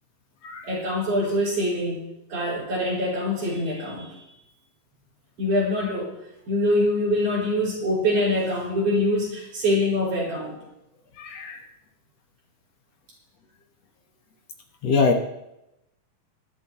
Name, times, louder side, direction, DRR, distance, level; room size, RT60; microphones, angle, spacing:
voice 1, 0.6-2.0 2.3-4.3 5.4-6.1 6.5-10.6, left 1 dB, 75° right, -5 dB, 7.3 m, -24 dB
voice 2, 11.2-11.6 14.8-15.2, left 4 dB, 60° left, 2 dB, 2.3 m, -23 dB
22.0 x 12.0 x 3.1 m, 0.86 s
omnidirectional pair, 3.6 m